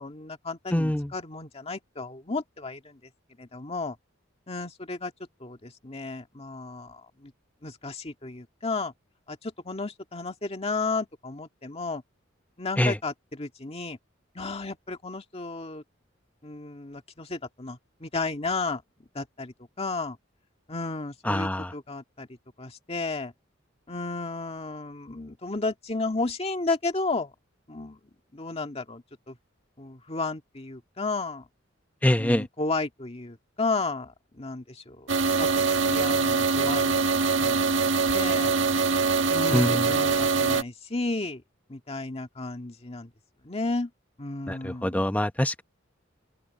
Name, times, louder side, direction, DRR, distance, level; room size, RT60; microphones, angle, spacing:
voice 1, 0.0-3.0 3.4-4.0 4.5-5.1 5.4-7.3 7.6-8.9 9.3-12.0 12.6-14.0 14.4-15.8 16.4-20.2 20.7-23.3 23.9-27.3 27.7-28.0 28.3-29.4 29.8-31.5 32.2-35.1 35.4-38.5 39.3-41.4 41.7-43.1 43.4-43.9 44.2-45.1, left 3 dB, 30° left, 1.8 m, -33 dB
voice 2, 0.7-1.1 12.8-12.9 21.3-21.7 32.0-32.4 39.5-39.9 44.5-45.6, left 1 dB, 10° left, 0.9 m, -24 dB
sound 1, 35.1-40.6, right 4 dB, 70° right, 1.8 m, -23 dB
open air
head